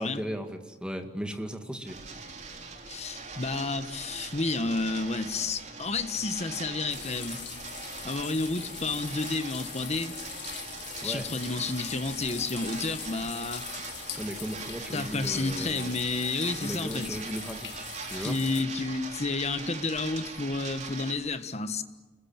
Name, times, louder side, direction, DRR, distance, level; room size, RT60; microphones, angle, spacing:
voice 1, 0.0-2.0 11.0-11.3 14.2-15.9 16.6-18.4, equal, 5° right, 2.2 m, -36 dB
sound 1, 1.9-21.1, right 4 dB, 40° right, 3.6 m, -41 dB
voice 2, 2.9-7.4 8.0-10.2 11.0-13.7 14.9-17.2 18.1-21.8, left 3 dB, 35° left, 1.4 m, -31 dB
sound 2, 6.9-18.6, left 11 dB, 65° left, 1.8 m, -42 dB
29.0 x 21.0 x 8.9 m
head